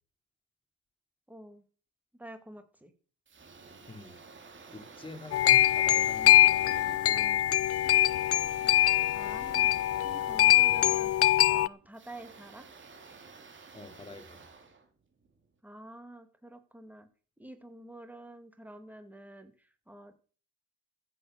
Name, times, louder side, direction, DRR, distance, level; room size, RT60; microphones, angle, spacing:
voice 1, 1.3-1.6 2.2-2.9 9.1-9.7 10.0-11.2 11.5-12.7 15.6-17.1 17.4-20.2, right 1 dB, 5° right, 7 dB, 2.3 m, -48 dB
sound 1, 3.3-15.5, right 4 dB, 40° right, 2.6 m, -52 dB
voice 2, 3.9-4.2 4.7-7.8 10.7-11.0 13.7-14.5, left 2 dB, 15° left, 6 dB, 2.6 m, -46 dB
sound 2, 5.3-11.7, left 13 dB, 50° left, 0.5 m, -23 dB
14.5 x 7.8 x 6.6 m, 0.40 s
cardioid pair, 90°, 30 cm